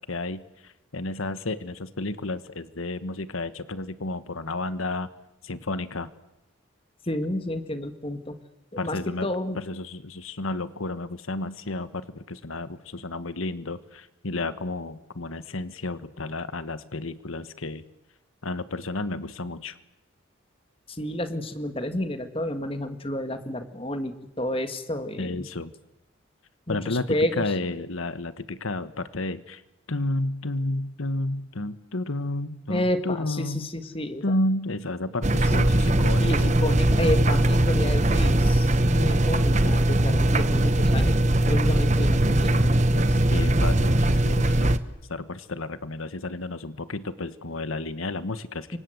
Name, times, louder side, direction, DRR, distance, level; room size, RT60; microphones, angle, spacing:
voice 1, 0.1-5.1 5.4-6.1 8.8-9.3 9.6-17.8 18.4-19.8 25.2-25.7 26.7-29.6 29.9-33.7 34.2-36.5 43.3-44.8 45.1-48.8, left 2 dB, 85° left, 13 dB, 1.4 m, -31 dB
voice 2, 7.1-8.4 8.7-9.6 20.9-25.5 26.7-27.5 32.7-34.2 36.2-43.2 48.7-48.8, left 1 dB, 25° left, 9 dB, 1.9 m, -30 dB
sound 1, 35.2-44.8, right 1 dB, 35° right, 1.2 m, -20 dB
29.0 x 25.0 x 8.0 m, 0.91 s
head